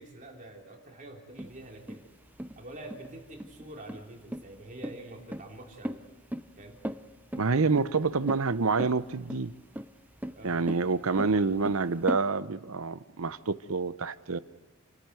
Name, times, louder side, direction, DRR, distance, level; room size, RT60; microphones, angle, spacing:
voice 1, 0.0-2.1 2.6-6.0 6.6-6.8 10.4-10.8, right 1 dB, 35° right, 3.4 m, -46 dB
sound 1, 1.4-12.2, equal, 10° right, 0.7 m, -38 dB
voice 2, 7.4-9.5 10.4-14.4, right 4 dB, 75° right, 0.8 m, -27 dB
28.5 x 13.0 x 9.2 m
head